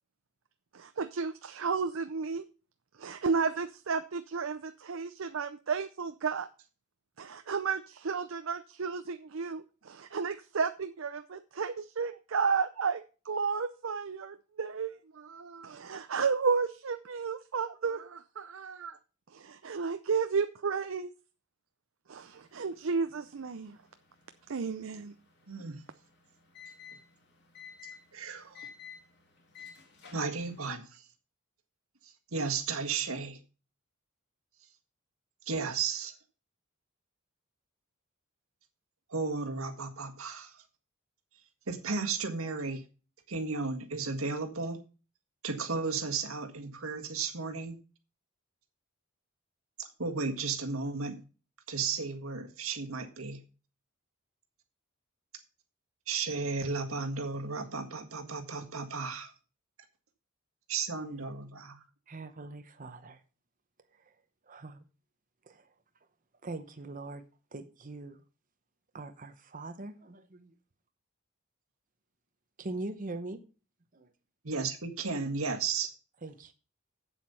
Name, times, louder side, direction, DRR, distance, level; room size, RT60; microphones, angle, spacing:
voice 1, 0.7-2.4 3.0-6.5 7.2-19.0 19.3-21.1 22.1-23.8 24.5-25.1, right 5 dB, 70° right, 10 dB, 0.6 m, -33 dB
sound 1, 22.1-30.7, left 7 dB, 55° left, 2.7 m, -54 dB
voice 2, 25.5-25.8 28.1-28.7 30.1-31.0 32.0-33.4 35.5-36.1 39.1-40.6 41.7-42.8 43.3-44.8 45.4-47.8 49.8-51.2 51.7-53.4 56.1-59.3 60.7-61.8 74.4-75.9, right 4 dB, 90° right, 5 dB, 1.7 m, -34 dB
voice 3, 62.1-63.2 64.5-64.8 65.5-65.7 66.4-67.2 67.5-68.2 68.9-70.5 72.6-73.4 73.9-74.1 76.2-76.5, right 2 dB, 40° right, 8 dB, 0.8 m, -42 dB
8.1 x 7.5 x 5.6 m, 0.35 s
head